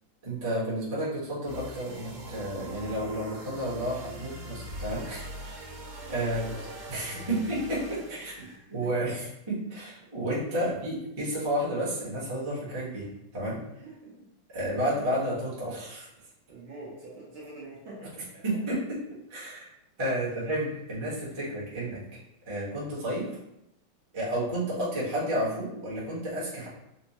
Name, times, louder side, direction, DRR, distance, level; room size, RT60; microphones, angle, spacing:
voice 1, 0.2-5.6 6.1-6.4 6.9-8.3 8.7-13.6 14.5-16.1 18.4-19.0 19.3-19.7 20.0-22.0 22.4-23.3 24.1-26.7, right 1 dB, 25° right, -8 dB, 0.6 m, -31 dB
sound 1, 1.4-8.6, equal, 90° right, 1.6 m, -42 dB
voice 2, 6.2-6.7 7.1-7.4 7.9-8.0 8.3-8.9 10.5-10.7 13.8-14.3 16.5-18.4, right 2 dB, 65° right, -6 dB, 1.2 m, -45 dB
4.3 x 2.0 x 2.8 m, 0.83 s
omnidirectional pair, 2.4 m